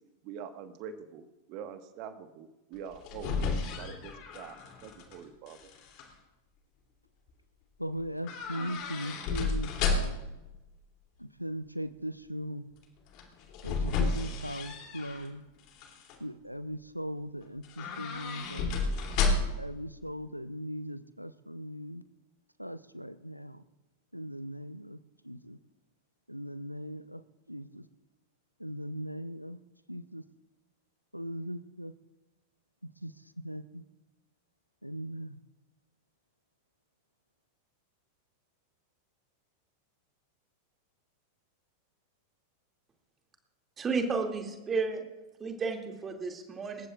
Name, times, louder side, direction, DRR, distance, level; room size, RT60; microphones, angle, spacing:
voice 1, 0.2-3.5 3.8-5.7, right 7 dB, 45° right, 9 dB, 1.4 m, -45 dB
sound 1, 2.8-5.2 5.5-6.0 8.2-10.4 13.1-15.3 15.7-16.2 17.6-19.7 20.0-20.1, left 4 dB, 40° left, 2.9 m, -32 dB
voice 2, 7.8-10.2 11.2-12.7 13.6-15.4 16.2-18.9 19.6-22.0 22.6-23.6 24.1-25.6 26.3-27.2 27.5-27.9 28.6-29.6 29.9-30.2 31.1-31.9 32.8-33.8 34.8-35.4, equal, 90° right, 15 dB, 0.6 m, -39 dB
voice 3, 43.8-45.0 45.4-46.9, right 4 dB, 20° right, 3 dB, 2.4 m, -32 dB
27.0 x 14.5 x 2.5 m, 1.0 s
figure-of-eight pair, 90°, 0 cm